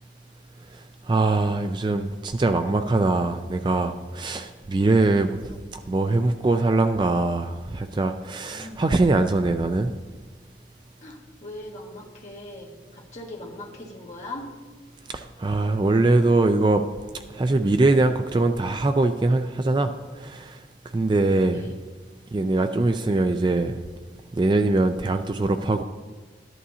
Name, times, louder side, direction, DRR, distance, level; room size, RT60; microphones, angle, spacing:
voice 1, 0.7-10.0 15.1-16.8 17.1-21.7 22.3-23.8 24.3-25.8, right 2 dB, 25° right, 0.3 m, -22 dB
voice 2, 8.5-8.8 11.0-14.4 21.5-21.7, left 1 dB, 40° left, 1.6 m, -40 dB
13.0 x 11.0 x 2.8 m
head